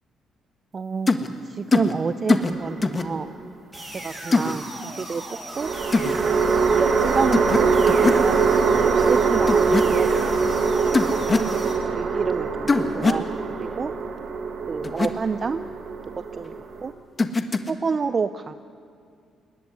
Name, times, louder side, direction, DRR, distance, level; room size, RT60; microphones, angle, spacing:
voice 1, 0.7-1.1 1.4-3.3 4.0-4.7 4.9-5.7 6.2-10.4 10.9-11.6 11.9-13.9 14.7-15.6 16.4-16.5 16.8-16.9 17.7-18.5, right 5 dB, 40° right, 12 dB, 0.6 m, -29 dB
sound 1, 1.1-1.3 1.7-1.9 2.3-2.5 2.8-3.1 4.3-4.5 5.9-6.1 7.3-7.6 7.9-8.2 9.5-9.8 10.9-11.5 12.7-13.2 14.8-15.1 17.2-17.7, left 3 dB, 30° left, 1.4 m, -21 dB
sound 2, 2.4-3.3 5.5-16.9, right 5 dB, 60° right, 2.2 m, -23 dB
sound 3, 3.7-11.7, right 1 dB, 20° right, 7.4 m, -37 dB
21.0 x 19.0 x 9.7 m, 2.3 s
cardioid pair, 90°, 0 cm